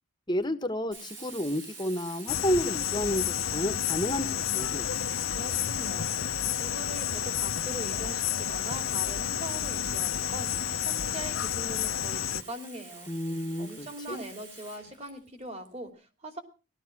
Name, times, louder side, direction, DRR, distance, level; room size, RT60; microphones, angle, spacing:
voice 1, 0.3-4.9 13.1-14.2, equal, 20° left, 9 dB, 1.2 m, -31 dB
Sink (filling or washing), 0.9-15.7, right 4 dB, 65° right, 7.4 m, -48 dB
sound 1, 2.3-12.4, left 10 dB, 80° left, 0.9 m, -30 dB
voice 2, 5.3-6.1 6.5-13.1 13.6-16.4, right 1 dB, 30° right, 6 dB, 2.9 m, -41 dB
18.0 x 13.0 x 6.0 m, 0.36 s
head